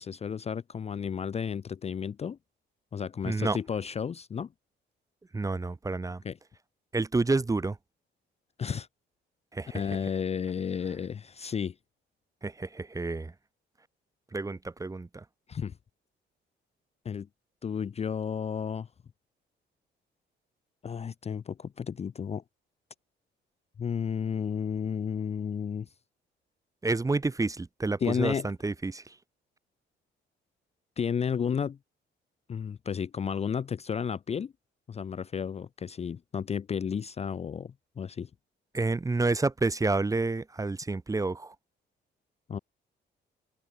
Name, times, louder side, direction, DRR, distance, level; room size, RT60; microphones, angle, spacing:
voice 1, 0.0-2.4 2.9-4.5 6.2-6.4 8.6-8.9 9.7-11.8 15.5-15.7 17.0-17.3 17.6-18.9 20.8-22.4 23.8-25.9 28.0-28.5 31.0-31.8 32.5-34.5 34.9-38.3 42.5-42.6, left 7 dB, 35° left, 0.5 m, -32 dB
voice 2, 3.3-3.6 5.3-6.2 6.9-7.8 9.5-9.8 12.4-13.3 14.3-15.2 26.8-29.1 38.7-41.5, right 3 dB, 15° right, 0.8 m, -29 dB
cardioid pair, 90°, 20 cm